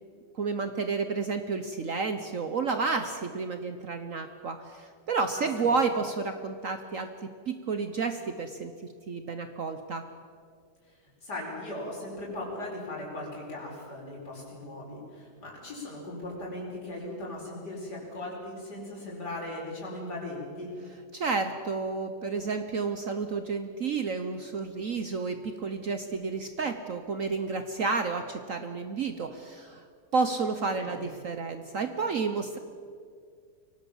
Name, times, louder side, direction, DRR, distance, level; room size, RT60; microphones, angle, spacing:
voice 1, 0.3-7.1 7.4-8.7 9.1-10.0 21.1-29.8 30.1-32.6, right 4 dB, 50° right, 8 dB, 1.2 m, -31 dB
voice 2, 5.3-5.7 11.2-20.7 30.7-31.1, left 1 dB, 65° left, -3 dB, 5.7 m, -38 dB
24.0 x 18.0 x 7.2 m, 2.2 s
omnidirectional pair, 1.9 m